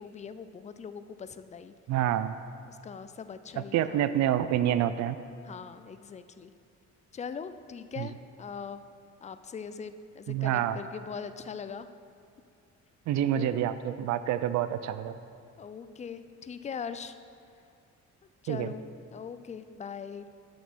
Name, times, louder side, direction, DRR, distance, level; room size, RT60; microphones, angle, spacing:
voice 1, 0.0-1.7 2.7-4.0 5.4-6.5 7.1-8.8 9.2-11.9 13.3-13.6 15.6-17.2 18.4-18.8 19.1-20.3, left 6 dB, 25° left, 11 dB, 0.4 m, -41 dB
voice 2, 1.9-2.4 3.6-5.2 8.0-8.1 10.3-10.8 13.1-15.2 18.5-18.7, right 11 dB, 65° right, 12 dB, 0.4 m, -27 dB
7.1 x 6.1 x 6.2 m, 2.3 s
cardioid pair, 90°, 30 cm